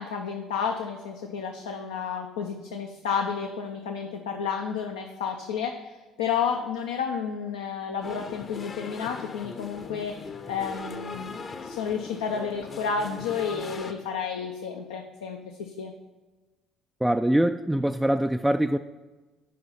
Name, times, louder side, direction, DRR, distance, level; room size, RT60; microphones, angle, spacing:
voice 1, 0.0-15.9, left 6 dB, 70° left, 2 dB, 0.6 m, -31 dB
sound 1, 8.0-13.9, left 4 dB, 40° left, 0.8 m, -39 dB
voice 2, 17.0-18.8, right 1 dB, 5° right, 7 dB, 0.3 m, -23 dB
8.6 x 5.5 x 5.4 m, 1.2 s
figure-of-eight pair, 50°, 0 cm